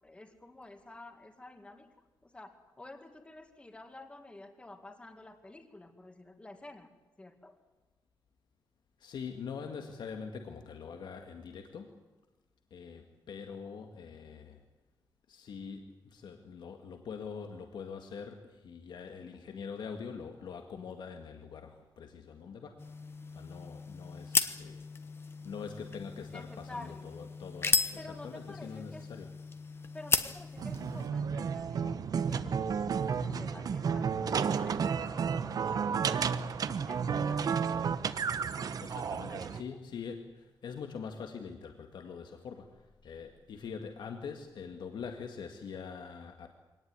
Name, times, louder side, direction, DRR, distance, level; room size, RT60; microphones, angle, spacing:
voice 1, 0.0-1.9 2.2-6.9 7.2-7.6 26.3-27.1 28.0-29.0 29.9-32.0 32.3-36.3 36.6-37.9 38.6-39.6, left 2 dB, 15° left, 7 dB, 2.1 m, -50 dB
voice 2, 9.0-12.0 12.7-14.6 15.3-22.9 23.3-24.9 25.4-29.3 38.8-46.5, left 6 dB, 85° left, 5 dB, 1.8 m, -44 dB
sound 1, 22.8-31.1, left 4 dB, 30° left, 1.2 m, -35 dB
sound 2, 30.6-39.6, right 6 dB, 55° right, 1.0 m, -32 dB
24.0 x 18.5 x 9.6 m, 1.1 s
wide cardioid pair, 175°, 7 cm